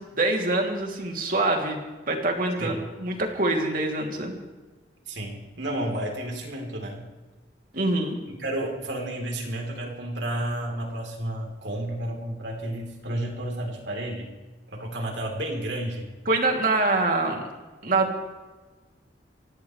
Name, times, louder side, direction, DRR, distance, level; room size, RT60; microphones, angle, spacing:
voice 1, 0.0-4.3 7.7-8.1 16.3-17.4 17.8-18.2, right 2 dB, 50° right, 1 dB, 3.0 m, -25 dB
voice 2, 5.1-7.0 8.4-14.3 14.7-16.1, right 1 dB, 80° right, 1 dB, 3.8 m, -31 dB
25.5 x 17.0 x 3.3 m, 1.3 s
head